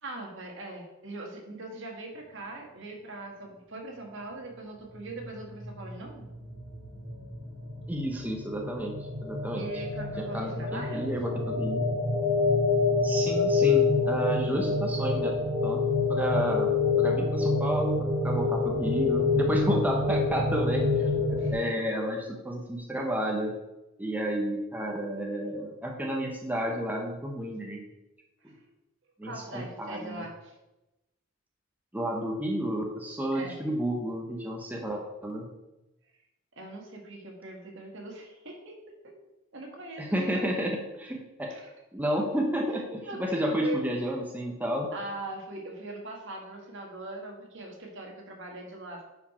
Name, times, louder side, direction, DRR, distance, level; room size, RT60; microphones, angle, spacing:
voice 1, 0.0-6.3 9.5-11.0 21.4-21.6 28.5-28.6 29.2-30.6 33.3-33.6 36.6-39.1 39.5-40.4 41.5-41.7 43.0-43.8 44.9-49.0, right 2 dB, 60° right, 1 dB, 1.7 m, -41 dB
sound 1, 5.1-21.5, left 3 dB, 30° right, 3.3 m, -27 dB
voice 2, 7.9-9.0 9.2-9.7 10.3-11.8 13.0-15.4 15.6-15.8 16.1-16.7 17.0-23.5 24.0-27.8 28.4-28.5 29.2-30.2 31.9-35.5 40.0-41.5 41.9-44.9, equal, 10° right, 0 dB, 0.9 m, -31 dB
9.9 x 4.9 x 4.3 m, 0.98 s
head